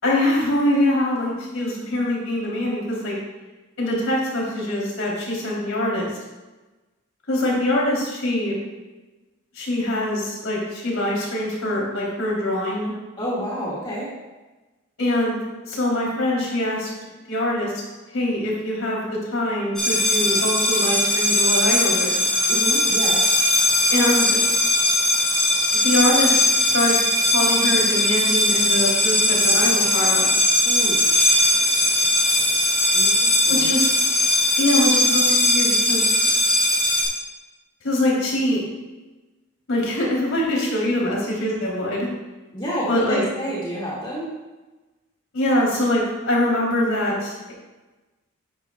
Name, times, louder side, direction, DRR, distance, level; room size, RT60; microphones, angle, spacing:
voice 1, 0.0-3.2 3.8-6.1 7.3-8.5 9.5-12.9 15.0-15.3 15.6-16.9 17.3-17.7 18.1-19.0 19.3-22.2 23.9-24.4 25.7-27.0 27.3-30.3 33.5-33.9 34.6-36.0 37.8-38.6 39.7-42.1 42.9-43.2 45.3-47.5, left 1 dB, 80° left, -3 dB, 3.2 m, -23 dB
voice 2, 13.2-14.1 22.5-23.2 30.7-31.0 32.9-33.7 42.5-44.3, equal, 25° left, -7 dB, 1.9 m, -29 dB
sound 1, 19.8-37.0, left 1 dB, 5° left, 3.0 m, -19 dB
11.0 x 9.8 x 2.3 m, 1.2 s
head